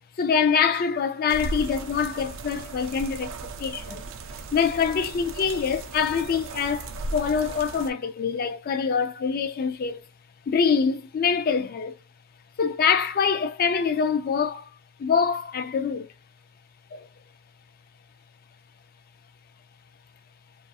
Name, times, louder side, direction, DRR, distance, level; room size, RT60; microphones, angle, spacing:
voice 1, 0.2-3.3 3.6-4.0 4.5-10.0 10.5-11.9 12.6-14.7 15.0-16.1 16.9-17.1, left 6 dB, 45° left, 0.3 m, -25 dB
sound 1, 1.3-7.9, right 3 dB, 60° right, 0.4 m, -36 dB
2.4 x 2.3 x 2.6 m
head